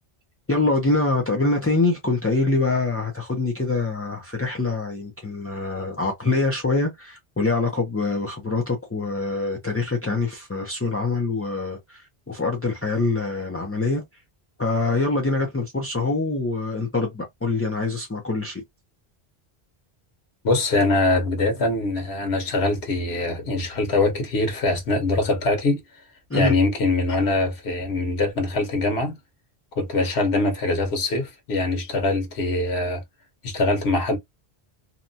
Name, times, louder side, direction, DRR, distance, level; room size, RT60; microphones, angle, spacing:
voice 1, 0.5-14.0 14.6-18.6 26.3-26.5, left 3 dB, 20° left, 0.4 m, -24 dB
voice 2, 20.4-25.8 26.3-29.1 29.8-33.0 33.4-34.2, left 2 dB, 85° left, 1.2 m, -23 dB
2.8 x 2.2 x 2.6 m
omnidirectional pair, 1.1 m